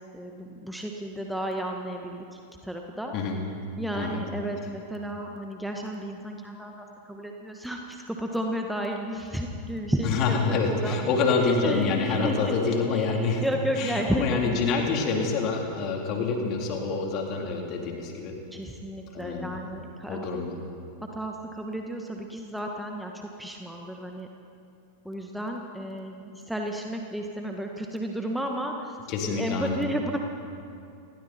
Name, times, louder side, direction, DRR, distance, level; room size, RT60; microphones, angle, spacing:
voice 1, 0.1-3.1 3.8-11.0 11.4-14.5 18.5-20.3 21.1-24.3 25.0-29.0 29.3-30.2, equal, ahead, 1 dB, 1.7 m, -33 dB
voice 2, 10.0-13.5 13.8-18.3 19.1-19.6 20.1-20.6 29.1-29.8, left 4 dB, 40° left, 1 dB, 3.8 m, -27 dB
29.5 x 21.0 x 4.5 m, 2.6 s
figure-of-eight pair, 90°, 0 cm